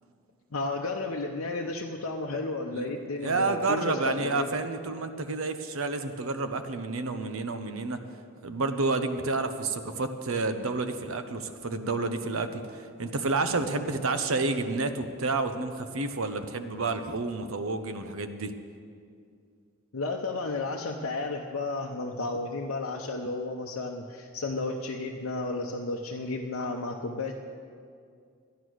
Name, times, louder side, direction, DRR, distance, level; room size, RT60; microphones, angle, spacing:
voice 1, 0.5-4.5 19.9-27.3, left 3 dB, 80° left, 0 dB, 0.7 m, -33 dB
voice 2, 3.2-8.0 8.4-18.5, right 3 dB, 75° right, 9 dB, 0.8 m, -30 dB
12.5 x 10.5 x 6.3 m, 2.3 s
head